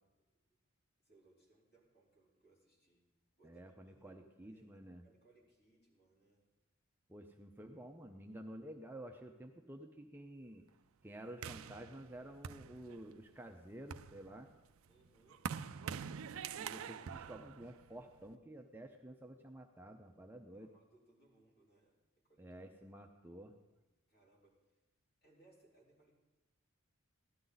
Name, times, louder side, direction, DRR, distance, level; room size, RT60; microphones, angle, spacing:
voice 1, 1.1-3.1 3.4-6.5 14.9-15.5 17.0-17.4 20.5-22.0 22.3-22.5 24.1-24.6 25.2-26.1, right 2 dB, 45° left, -4 dB, 4.1 m, -69 dB
voice 2, 3.4-5.0 7.1-10.6 11.0-14.5 16.6-20.7 22.4-23.5, right 1 dB, 10° right, 3 dB, 0.6 m, -51 dB
sound 1, 11.4-13.2 13.7-18.3, right 7 dB, 70° right, 0.4 m, -46 dB
17.0 x 12.5 x 4.0 m, 1.1 s
head